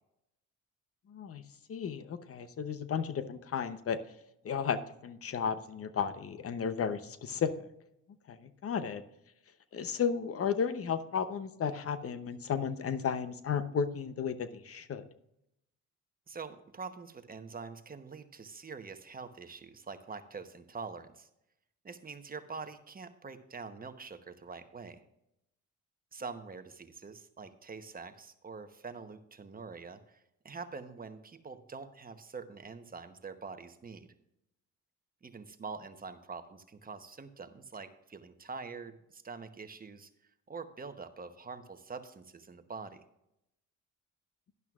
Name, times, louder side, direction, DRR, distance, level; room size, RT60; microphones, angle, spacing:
voice 1, 1.1-1.4 1.7-4.0 4.4-7.7 8.3-9.0 9.7-15.0, left 7 dB, 50° left, 12 dB, 0.8 m, -34 dB
voice 2, 16.3-21.3 21.8-25.0 26.1-34.1 35.2-40.1 40.5-43.0, right 4 dB, 30° right, 9 dB, 1.0 m, -45 dB
12.0 x 11.0 x 2.4 m, 0.82 s
cardioid pair, 90°, 30 cm